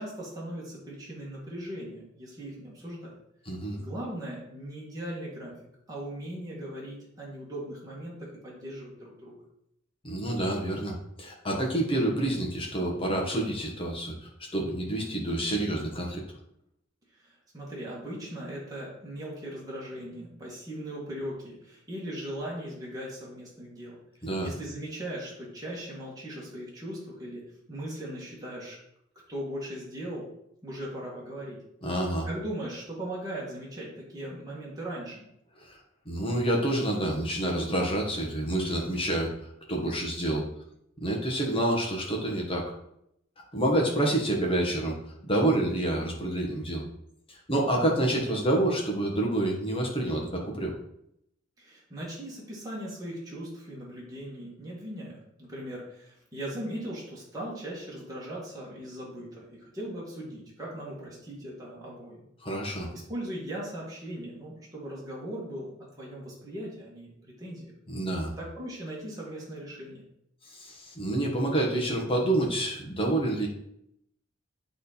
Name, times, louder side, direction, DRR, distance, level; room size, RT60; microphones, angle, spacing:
voice 1, 0.0-3.1 3.8-5.6 5.9-9.3 17.2-27.4 27.7-28.8 29.3-30.3 30.6-31.6 32.3-35.2 51.6-62.3 62.9-67.7 68.4-70.0, right 1 dB, 20° right, -6 dB, 1.9 m, -39 dB
voice 2, 3.5-3.8 10.0-16.2 24.2-24.5 31.8-32.3 35.6-35.8 36.1-39.3 39.7-40.4 41.0-42.7 43.5-44.9 45.2-46.8 47.3-50.7 62.4-62.9 67.9-68.3 70.5-73.5, right 1 dB, 30° left, -1 dB, 1.7 m, -28 dB
9.5 x 3.9 x 4.3 m, 0.76 s
head